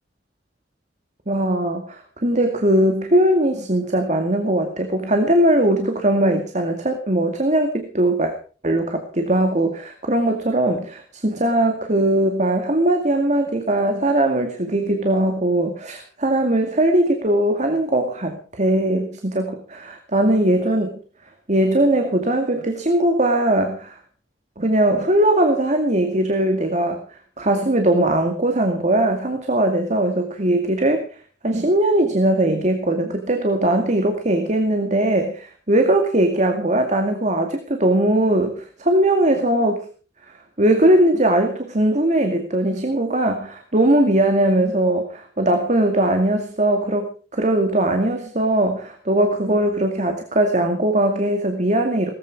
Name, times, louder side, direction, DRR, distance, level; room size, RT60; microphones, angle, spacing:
voice 1, 1.3-8.3 8.6-21.0 21.5-24.0 24.6-27.0 27.4-31.1 31.4-39.8 40.6-52.1, right 1 dB, 40° right, 5 dB, 2.3 m, -20 dB
18.5 x 15.0 x 4.8 m, 0.39 s
head